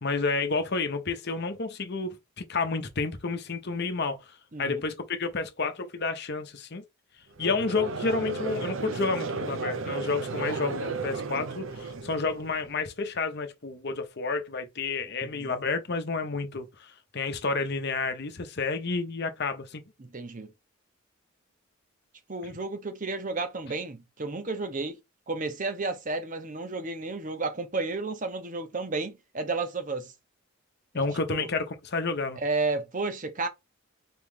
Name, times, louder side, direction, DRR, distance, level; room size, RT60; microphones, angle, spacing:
voice 1, 0.0-4.2 4.6-6.8 7.4-19.8 30.9-32.4, left 4 dB, 50° left, 0.9 m, -30 dB
Conversation / Crowd, 7.4-12.7, right 4 dB, 70° right, 0.6 m, -34 dB
voice 2, 20.0-20.5 22.3-25.0 25.3-30.1 31.0-31.5 32.4-33.5, right 3 dB, 40° right, 0.8 m, -32 dB
4.4 x 3.1 x 3.7 m
head